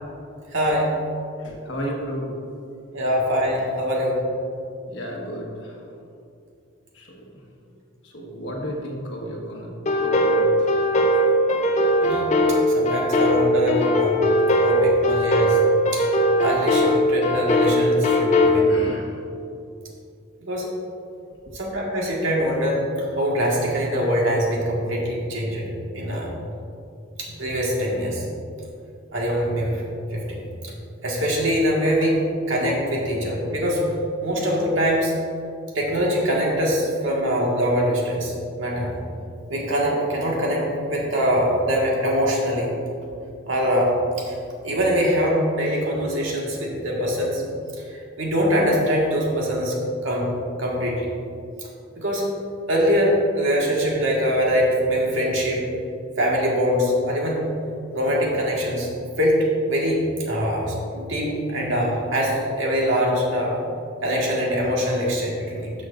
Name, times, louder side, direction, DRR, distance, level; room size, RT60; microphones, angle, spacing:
voice 1, 0.5-0.9 2.9-4.2 12.0-14.2 14.6-15.6 15.9-16.0 16.4-18.8 20.4-20.7 21.5-25.7 25.9-26.3 27.2-28.2 29.1-29.8 30.1-30.7 31.0-32.2 32.5-33.8 34.2-35.1 35.7-38.9 39.5-40.6 40.9-42.7 43.5-44.3 44.6-47.4 47.8-49.8 50.0-50.3 50.6-51.1 51.6-51.7 51.9-52.3 52.7-55.8 56.2-57.5 57.9-58.9 59.2-63.6 64.0-65.7, equal, 75° right, -3 dB, 1.6 m, -23 dB
voice 2, 1.4-2.3 4.9-5.8 6.9-7.2 8.0-9.7 10.0-10.7 18.5-19.1, equal, 65° left, -1 dB, 1.4 m, -33 dB
sound 1, 9.9-18.6, equal, 35° left, 0.5 m, -20 dB
12.0 x 6.2 x 2.5 m, 2.5 s
head